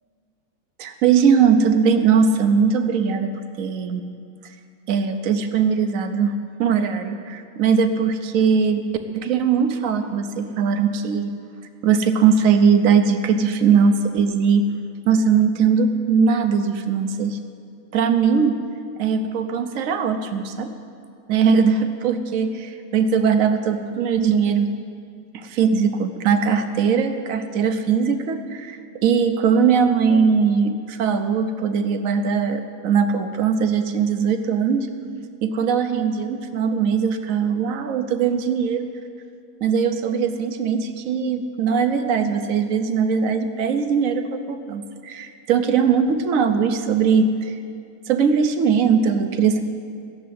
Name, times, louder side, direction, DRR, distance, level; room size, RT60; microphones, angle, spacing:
voice 1, 0.8-3.3 3.6-4.0 4.9-6.3 6.6-8.8 9.1-11.3 11.8-14.6 15.1-17.4 17.9-18.6 19.0-20.7 21.3-24.7 25.3-34.9 35.4-38.9 39.6-47.5 48.1-49.6, right 6 dB, 60° right, 8 dB, 1.2 m, -20 dB
15.5 x 7.3 x 9.4 m, 2.3 s
omnidirectional pair, 1.7 m